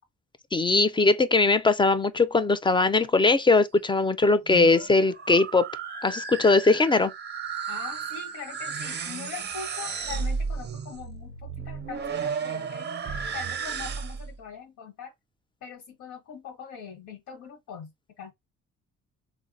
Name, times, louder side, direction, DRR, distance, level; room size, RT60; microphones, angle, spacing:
voice 1, 0.5-5.7 6.0-7.1, left 3 dB, 15° left, 0.3 m, -21 dB
sound 1, 4.3-14.3, right 5 dB, 35° right, 0.5 m, -34 dB
voice 2, 7.7-12.9 13.3-15.1 15.6-17.9 18.2-18.3, left 6 dB, 80° left, 0.9 m, -42 dB
3.6 x 2.0 x 2.5 m
cardioid pair, 90°, 30 cm